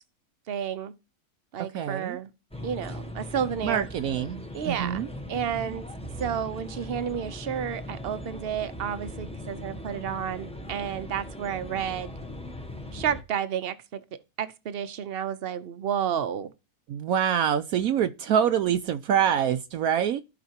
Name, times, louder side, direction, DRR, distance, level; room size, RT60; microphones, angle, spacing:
voice 1, 0.5-0.9 1.5-2.3 2.6-3.9 4.5-5.8 6.2-12.2 12.9-14.0 14.4-16.5, right 8 dB, 50° right, 0.9 m, -31 dB
voice 2, 1.7-2.2 3.6-5.1 16.9-20.2, right 9 dB, 75° right, 1.1 m, -25 dB
sound 1, 2.5-13.2, equal, 5° left, 0.8 m, -39 dB
15.5 x 5.2 x 2.9 m
omnidirectional pair, 1.6 m